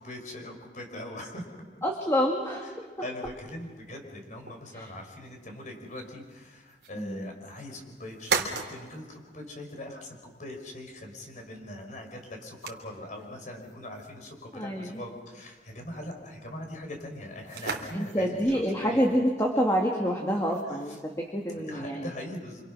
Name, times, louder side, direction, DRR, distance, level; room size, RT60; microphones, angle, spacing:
voice 1, 0.0-1.6 3.0-19.0 20.6-21.0 21.5-22.6, left 1 dB, 45° left, 3 dB, 5.1 m, -41 dB
voice 2, 1.8-2.7 4.7-4.8 7.0-7.3 14.5-15.0 17.9-22.0, equal, 15° left, 0 dB, 2.2 m, -27 dB
sound 1, 3.2-21.7, right 5 dB, 70° right, 3.0 m, -41 dB
27.5 x 27.0 x 6.2 m, 1.4 s
head